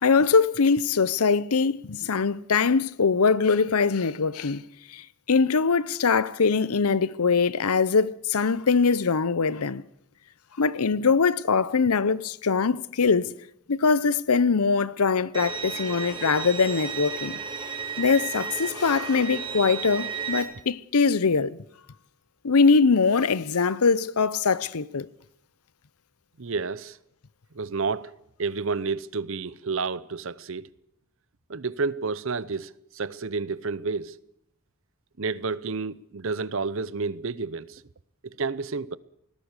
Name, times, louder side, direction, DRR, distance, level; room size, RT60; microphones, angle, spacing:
voice 1, 0.0-4.6 4.9-9.8 10.6-13.4 13.7-17.4 18.0-21.6 22.4-25.1, left 5 dB, 85° left, 0.7 m, -22 dB
Bowed string instrument, 15.3-20.4, right 6 dB, 20° right, 2.5 m, -33 dB
voice 2, 26.4-27.0 27.5-28.1 28.4-30.7 31.5-34.2 35.2-37.8 38.2-39.0, right 4 dB, 60° right, 0.7 m, -30 dB
19.0 x 17.0 x 8.2 m
head